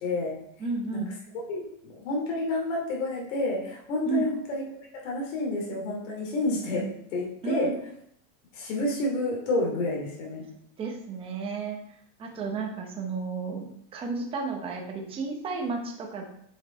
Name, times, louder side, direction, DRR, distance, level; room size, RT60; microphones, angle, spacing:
voice 1, 0.0-0.4 0.9-1.1 1.5-4.6 5.0-7.7 8.5-10.4, left 2 dB, 65° left, -1 dB, 2.8 m, -29 dB
voice 2, 0.6-1.1 4.1-4.3 7.4-7.7 10.8-11.8 12.2-13.7 13.9-16.2, right 5 dB, 15° right, 1 dB, 0.9 m, -32 dB
7.3 x 5.7 x 4.4 m, 0.70 s
supercardioid pair, 175°, 40 cm